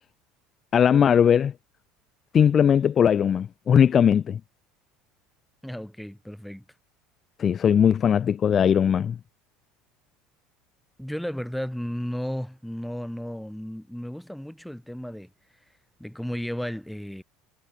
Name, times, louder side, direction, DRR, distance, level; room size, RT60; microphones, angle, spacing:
voice 1, 0.7-1.5 2.3-4.4 7.4-9.2, left 8 dB, 40° left, 0.7 m, -19 dB
voice 2, 5.6-6.6 11.0-15.3 16.0-17.2, equal, ahead, 2.2 m, -34 dB
hypercardioid pair, 75°, 0 cm